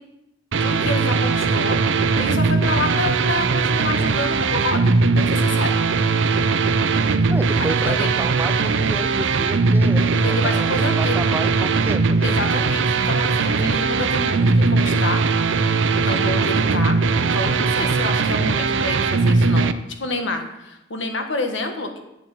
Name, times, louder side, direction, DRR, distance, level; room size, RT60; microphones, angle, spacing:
sound 1, 0.5-19.7, right 4 dB, 75° right, 0.6 m, -19 dB
voice 1, 0.6-5.8 7.6-8.1 10.2-11.2 12.2-15.2 16.0-19.7 20.0-22.0, left 2 dB, 75° left, 5 dB, 1.6 m, -28 dB
voice 2, 7.3-10.6 11.0-12.3, right 2 dB, 10° right, 10 dB, 0.3 m, -31 dB
8.3 x 7.6 x 7.4 m, 0.90 s
head